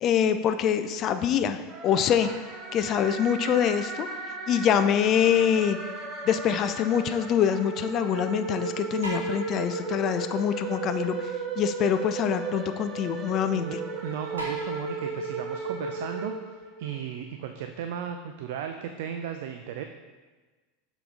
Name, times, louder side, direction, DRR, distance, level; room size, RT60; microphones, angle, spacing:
voice 1, 0.0-2.3 2.7-4.1 4.5-5.8 6.2-13.8, left 8 dB, 40° left, 9 dB, 0.3 m, -25 dB
sound 1, 1.7-17.0, right 4 dB, 30° right, 0.9 m, -35 dB
sound 2, 2.2-3.4 6.3-6.4 9.0-11.9 12.3-12.4 13.5-13.6 14.4-17.2 17.7-17.8 18.8-18.9, right 1 dB, 80° right, 1.2 m, -43 dB
voice 2, 14.0-19.8, right 8 dB, 60° right, 6 dB, 0.3 m, -35 dB
6.7 x 4.0 x 3.5 m, 1.3 s
figure-of-eight pair, 80°, 0 cm